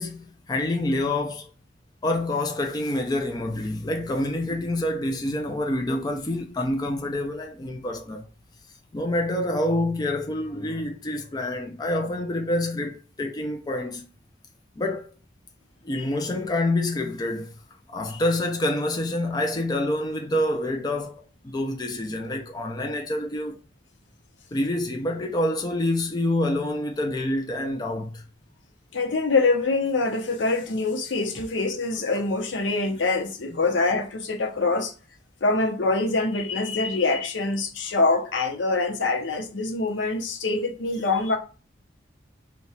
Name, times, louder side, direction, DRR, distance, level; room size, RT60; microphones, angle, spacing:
voice 1, 0.0-1.5 2.0-8.3 8.9-14.1 14.8-15.1 15.8-17.6 17.9-23.6 24.5-28.2 33.5-33.6, left 1 dB, 20° left, 0.4 m, -27 dB
voice 2, 28.9-34.9 35.4-41.4, left 3 dB, 80° left, 0.6 m, -24 dB
2.8 x 2.2 x 4.1 m
head